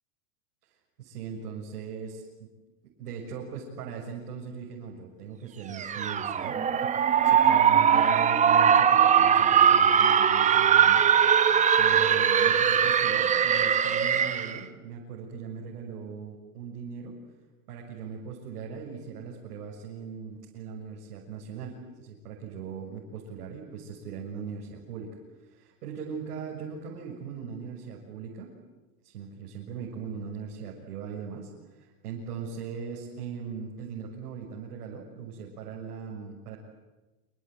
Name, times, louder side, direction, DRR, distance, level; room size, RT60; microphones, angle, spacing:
voice 1, 1.0-2.5 3.0-11.1 11.4-11.5 11.8-17.1 17.7-25.1 25.5-28.5 29.0-31.5 31.8-36.6, right 6 dB, 90° right, -3 dB, 7.0 m, -39 dB
sound 1, 5.7-14.6, right 8 dB, 15° right, 1.0 m, -21 dB
28.0 x 21.5 x 9.7 m, 1.1 s
supercardioid pair, 155°, 45 cm